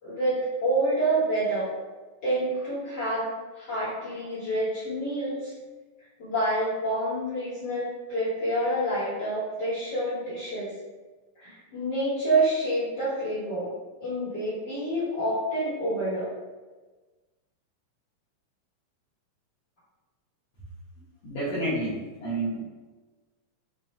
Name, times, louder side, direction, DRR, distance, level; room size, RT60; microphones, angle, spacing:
voice 1, 0.0-1.7 2.2-3.3 3.5-5.5 6.2-10.7 11.3-13.7 14.0-16.3, right 1 dB, 40° left, -12 dB, 1.6 m, -27 dB
voice 2, 21.2-22.6, right 1 dB, 65° left, -11 dB, 1.6 m, -29 dB
6.0 x 2.5 x 2.2 m, 1.3 s
omnidirectional pair, 3.7 m